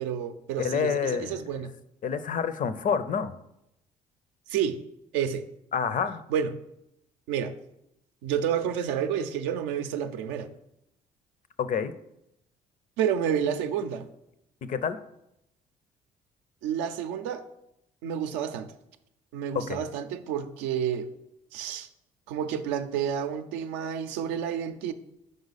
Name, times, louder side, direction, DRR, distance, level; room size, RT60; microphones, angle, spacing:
voice 1, 0.0-1.7 4.5-4.8 5.1-5.4 6.3-6.5 7.3-7.5 8.2-10.5 13.0-14.1 16.6-17.4 18.0-18.7 19.3-21.1 21.5-21.9 22.3-24.9, right 8 dB, 85° right, 8 dB, 0.5 m, -29 dB
voice 2, 0.6-1.4 2.0-3.3 5.7-6.2 11.6-11.9 14.6-15.0 19.5-19.8, left 7 dB, 50° left, 13 dB, 0.5 m, -28 dB
5.1 x 4.6 x 4.0 m, 0.81 s
supercardioid pair, 60°, 18 cm